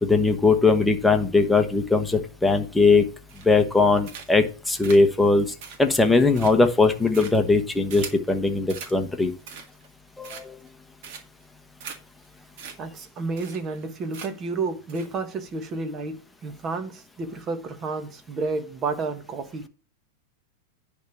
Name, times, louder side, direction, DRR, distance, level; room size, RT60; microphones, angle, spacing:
voice 1, 0.0-3.0 3.4-5.5 5.8-9.3 10.2-10.5, left 3 dB, 5° left, 1.1 m, -20 dB
sound 1, 3.3-3.7 4.0-4.5 4.8-8.3 8.7-9.0 9.3-9.9 10.2-10.7 11.0-11.4 11.8-12.0 12.2-12.3 12.6-12.7 13.0-13.1 13.4-13.8 14.1-14.5 14.9-15.1, right 6 dB, 55° right, 1.9 m, -40 dB
voice 2, 12.8-19.7, right 3 dB, 30° right, 1.3 m, -31 dB
10.5 x 3.5 x 6.9 m
supercardioid pair, 140°, 0 cm